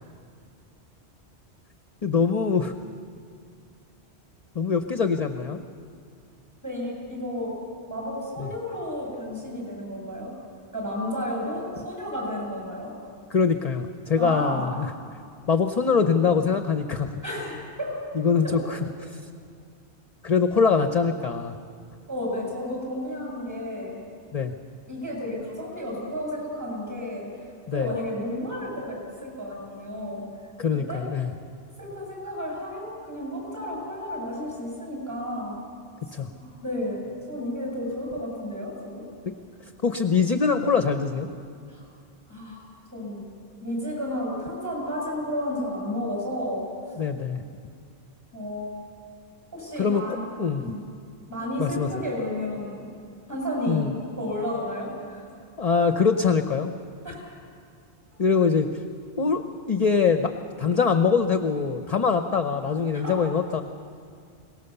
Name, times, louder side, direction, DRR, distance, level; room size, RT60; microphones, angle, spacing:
voice 1, 2.0-2.7 4.5-5.6 8.4-8.5 13.3-14.9 15.5-17.2 18.1-19.2 20.2-21.6 24.3-24.5 27.7-27.9 30.6-31.3 36.1-36.3 39.8-41.3 47.0-47.4 49.8-50.0 50.4-50.6 51.6-51.9 53.7-53.9 55.6-56.7 58.2-58.7 59.2-60.3 60.6-63.6, left 5 dB, 40° left, 7 dB, 0.8 m, -23 dB
voice 2, 6.6-7.5 7.9-10.3 10.7-12.9 14.2-14.7 17.2-17.9 18.4-18.6 22.1-24.0 24.9-27.3 27.7-30.2 30.7-31.0 31.8-35.6 36.3-39.0 41.7-41.8 42.3-42.6 42.9-43.2 43.6-46.7 48.3-48.7 49.5-50.2 50.6-50.8 51.3-52.8 53.3-55.2 57.0-57.2 62.9-63.1, left 1 dB, 15° right, -3 dB, 7.6 m, -32 dB
23.0 x 19.0 x 6.9 m, 2.3 s
omnidirectional pair, 1.1 m